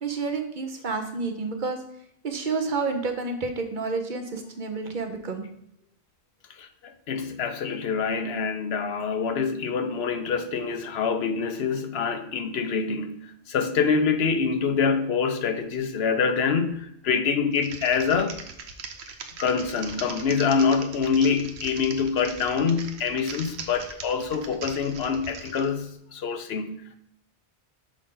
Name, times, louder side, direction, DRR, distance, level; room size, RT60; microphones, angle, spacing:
voice 1, 0.0-1.8 2.2-5.4, right 4 dB, 50° right, 1.1 m, -29 dB
voice 2, 7.1-18.4 19.4-26.9, left 5 dB, 70° left, 0.9 m, -25 dB
Typing, 17.5-25.7, right 5 dB, 75° right, 1.1 m, -40 dB
6.4 x 5.3 x 3.8 m
omnidirectional pair, 1.1 m